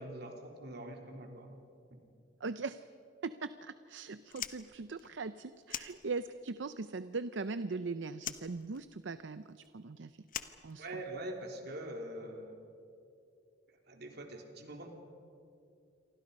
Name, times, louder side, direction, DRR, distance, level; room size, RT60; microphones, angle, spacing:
voice 1, 0.0-1.5 1.9-2.0 10.8-12.6 13.7-14.9, right 1 dB, 60° right, 3 dB, 3.3 m, -44 dB
voice 2, 2.4-2.8 3.2-10.2 10.6-10.9, right 4 dB, 75° right, 13 dB, 0.6 m, -40 dB
Fire, 4.2-6.6 6.8-7.8 8.2-11.3, left 10 dB, 50° left, 1.0 m, -44 dB
28.5 x 24.0 x 5.4 m, 2.4 s
head